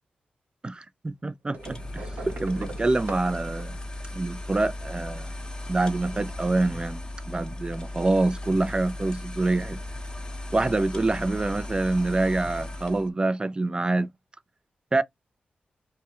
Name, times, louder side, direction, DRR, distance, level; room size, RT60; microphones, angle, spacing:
voice 1, 1.0-3.8 4.1-5.3 5.7-7.0 7.3-9.8 10.5-14.1 14.9-15.0, right 2 dB, 25° right, 0.4 m, -26 dB
sound 1, 1.5-4.8 6.0-6.8 8.0-8.1 8.3-8.4, right 3 dB, 60° right, 0.8 m, -42 dB
sound 2, 1.6-13.1, left 1 dB, 25° left, 0.7 m, -37 dB
2.2 x 2.2 x 2.8 m
cardioid pair, 50°, 3 cm